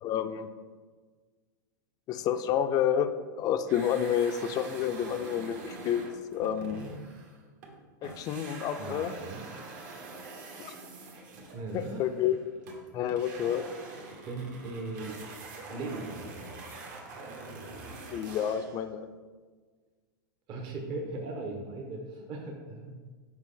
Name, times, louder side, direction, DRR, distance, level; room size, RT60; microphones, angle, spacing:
voice 1, 0.0-0.5 2.1-6.1 6.3-6.9 8.0-9.1 10.6-10.7 11.7-12.4 12.9-13.6 18.1-19.1, left 9 dB, 35° left, 10 dB, 0.4 m, -29 dB
sound 1, 3.7-7.8 8.0-18.8, right 3 dB, 60° right, 1.5 m, -45 dB
voice 2, 8.8-9.5 11.5-12.1 14.3-15.2 15.7-16.3 20.5-22.9, right 2 dB, 45° right, 1 dB, 1.0 m, -38 dB
6.1 x 5.1 x 3.8 m, 1.5 s
hypercardioid pair, 120°, 11 cm